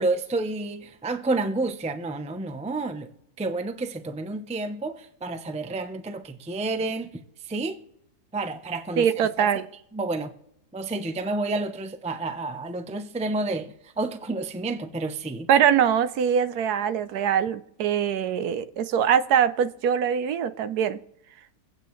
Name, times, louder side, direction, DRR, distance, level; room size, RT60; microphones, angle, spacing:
voice 1, 0.0-3.1 3.4-7.1 7.5-7.8 8.3-9.1 9.4-9.5 9.9-10.3 10.7-15.5, right 2 dB, 10° right, 0.4 m, -30 dB
voice 2, 9.0-9.7 15.5-21.0, right 8 dB, 75° right, 1.2 m, -23 dB
24.5 x 8.6 x 3.2 m
omnidirectional pair, 1.7 m